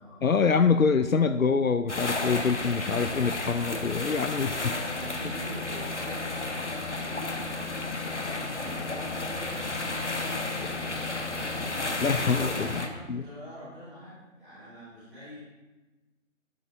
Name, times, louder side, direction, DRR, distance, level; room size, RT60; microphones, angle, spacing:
voice 1, 0.2-4.6 12.0-12.7 13.1-13.2, left 5 dB, 85° left, 11 dB, 0.6 m, -25 dB
sound 1, 1.9-12.9, left 2 dB, 60° left, 1.3 m, -32 dB
voice 2, 4.6-7.6 8.0-11.9 12.3-15.4, equal, ahead, -22 dB, 3.2 m, -44 dB
12.0 x 11.5 x 2.7 m, 1.1 s
figure-of-eight pair, 165°, 40 cm